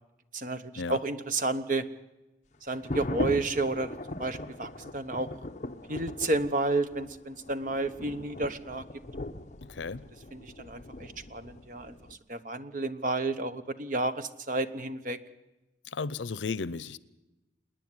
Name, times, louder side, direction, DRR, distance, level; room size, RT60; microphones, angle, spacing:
voice 1, 0.3-1.9 2.6-5.3 5.9-8.9 10.3-12.0 12.3-15.2, right 2 dB, 45° right, 0.9 m, -31 dB
sound 1, 2.7-12.1, left 1 dB, 40° left, 0.8 m, -40 dB
voice 2, 9.6-10.0 15.8-17.0, left 4 dB, 85° left, 0.6 m, -34 dB
27.0 x 10.0 x 9.7 m
head